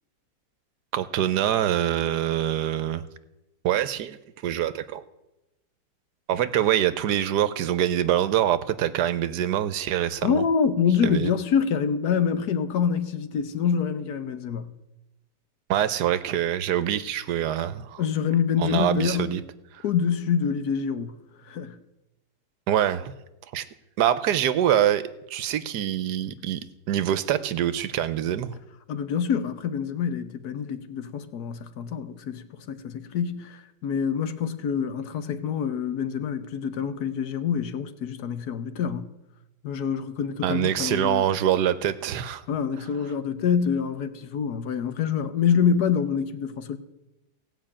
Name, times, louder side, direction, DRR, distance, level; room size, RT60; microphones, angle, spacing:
voice 1, 0.9-3.0 3.6-4.2 4.4-5.0 6.3-10.4 11.0-11.3 15.7-18.0 18.6-19.4 22.7-23.1 23.5-23.6 24.0-25.0 25.3-26.6 26.9-28.6 40.4-42.4, right 11 dB, 75° right, 1.3 m, -24 dB
voice 2, 10.2-14.7 18.0-19.4 19.8-21.2 21.4-21.8 28.9-39.1 39.6-41.3 42.5-46.8, left 7 dB, 70° left, 1.3 m, -26 dB
16.5 x 5.8 x 8.6 m
omnidirectional pair, 1.8 m